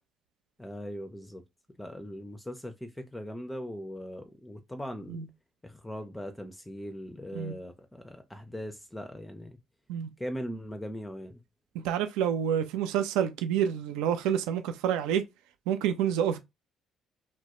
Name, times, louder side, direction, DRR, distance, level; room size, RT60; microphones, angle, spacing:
voice 1, 0.6-1.4 1.8-5.3 5.6-9.6 10.2-11.4, equal, 10° left, 0.4 m, -40 dB
voice 2, 11.8-15.2 15.7-16.4, right 9 dB, 75° right, 0.3 m, -28 dB
2.2 x 2.0 x 2.8 m
hypercardioid pair, 50°, 0 cm